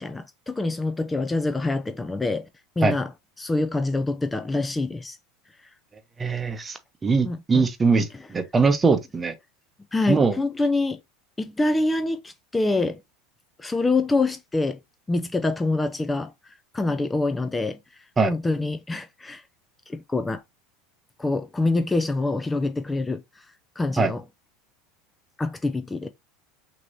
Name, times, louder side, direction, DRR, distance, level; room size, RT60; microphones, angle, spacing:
voice 1, 0.0-2.5 2.8-3.1 3.4-5.2 7.2-7.7 8.1-8.3 9.9-11.0 11.4-13.0 13.6-14.8 15.1-16.3 16.7-19.4 19.9-20.4 21.2-23.5 23.8-24.2 25.4-26.1, left 2 dB, 15° left, 0.5 m, -26 dB
voice 2, 6.2-9.3 10.1-10.4 18.2-18.3 24.0-24.1, right 4 dB, 20° right, 0.9 m, -21 dB
6.0 x 2.9 x 2.7 m
hypercardioid pair, 85°, 0 cm